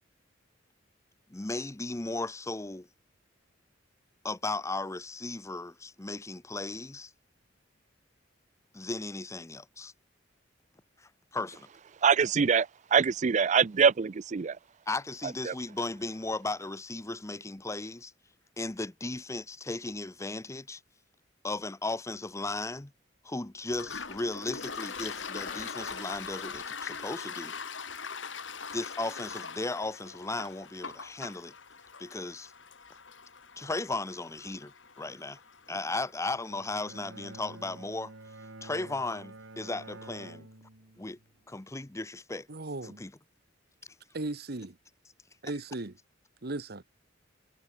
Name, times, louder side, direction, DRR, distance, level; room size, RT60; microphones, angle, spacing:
voice 1, 1.3-2.9 4.2-7.1 8.7-9.9 11.0-11.7 14.9-18.1 18.6-20.8 21.4-22.9 23.2-27.5 28.7-31.5 32.0-32.5 33.6-35.4 35.7-38.1 38.6-40.5 41.0-41.2 41.5-42.5 42.8-43.1, left 2 dB, 15° left, 0.8 m, -36 dB
voice 2, 12.0-14.6 15.5-15.6, right 6 dB, 40° right, 0.4 m, -24 dB
Toilet flush, 23.7-37.1, left 5 dB, 70° left, 4.6 m, -42 dB
sound 1, 24.0-28.7, left 4 dB, 50° left, 6.6 m, -50 dB
Bowed string instrument, 36.2-41.4, right 2 dB, 85° right, 2.8 m, -49 dB
voice 3, 42.5-43.0 44.1-44.7 45.4-45.9 46.4-46.8, right 2 dB, 55° right, 1.3 m, -36 dB
head